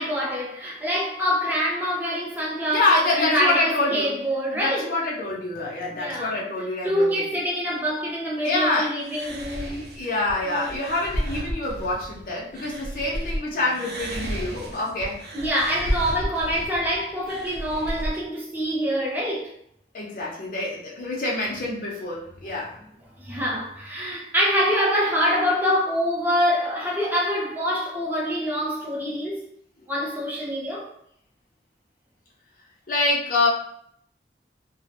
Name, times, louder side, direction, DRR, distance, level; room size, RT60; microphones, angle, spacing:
voice 1, 0.0-4.9 5.9-6.4 6.8-9.8 10.4-10.7 15.3-19.5 23.2-29.4 29.9-30.9, equal, 10° right, 0.5 m, -25 dB
voice 2, 2.7-4.2 4.5-7.1 8.4-8.9 9.7-15.2 19.9-22.8 32.9-33.5, left 2 dB, 50° left, 0.5 m, -26 dB
sound 1, 9.0-13.4 13.7-18.2, equal, 65° right, 0.5 m, -32 dB
2.4 x 2.0 x 2.8 m
head